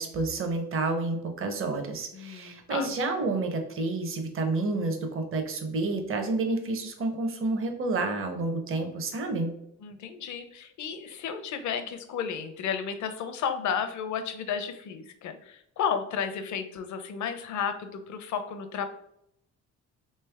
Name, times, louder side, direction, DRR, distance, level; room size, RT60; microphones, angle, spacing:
voice 1, 0.0-9.5, right 3 dB, 45° right, 5 dB, 0.8 m, -29 dB
voice 2, 2.1-2.9 9.8-18.9, left 7 dB, 70° left, 8 dB, 0.6 m, -33 dB
3.3 x 3.1 x 3.4 m, 0.75 s
cardioid pair, 90°, 30 cm